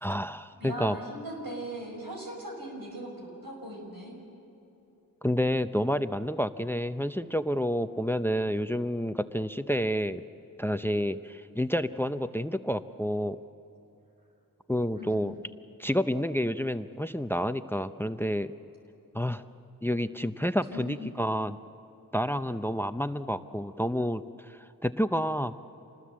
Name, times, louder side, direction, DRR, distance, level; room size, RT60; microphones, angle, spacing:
voice 1, 0.0-1.0 5.2-10.2 10.6-13.4 14.7-15.3 15.8-18.5 19.1-19.4 19.8-21.6 22.1-25.5, equal, 5° left, 11 dB, 0.7 m, -29 dB
voice 2, 0.6-4.2 15.0-15.2 20.7-21.1, equal, 90° right, 0 dB, 5.8 m, -39 dB
26.5 x 20.0 x 7.6 m, 2.9 s
wide cardioid pair, 45°, 35 cm